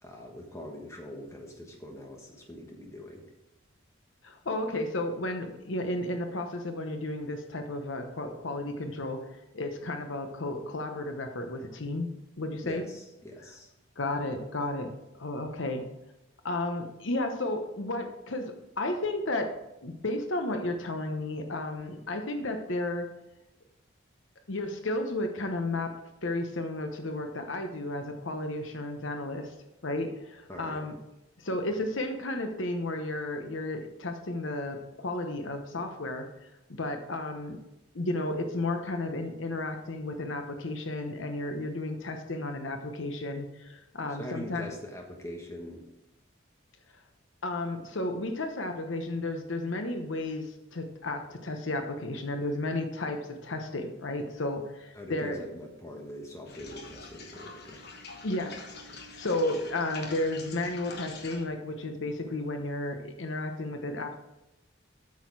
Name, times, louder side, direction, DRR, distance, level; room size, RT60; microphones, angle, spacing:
voice 1, 0.0-3.2 12.6-13.7 30.5-30.8 31.8-31.9 44.2-45.8 55.0-57.8 58.9-59.0, left 1 dB, 15° left, 1 dB, 1.3 m, -42 dB
voice 2, 4.2-12.1 12.4-12.8 14.0-14.9 15.2-15.8 16.4-19.5 19.8-23.1 24.5-25.9 26.2-29.5 29.8-31.0 31.4-36.5 36.8-37.6 37.9-44.7 47.4-55.4 58.2-58.6 59.2-64.2, left 2 dB, 65° left, 6 dB, 0.9 m, -33 dB
sound 1, 56.5-61.4, left 3 dB, 50° left, 1.2 m, -45 dB
8.4 x 6.4 x 4.7 m, 0.93 s
head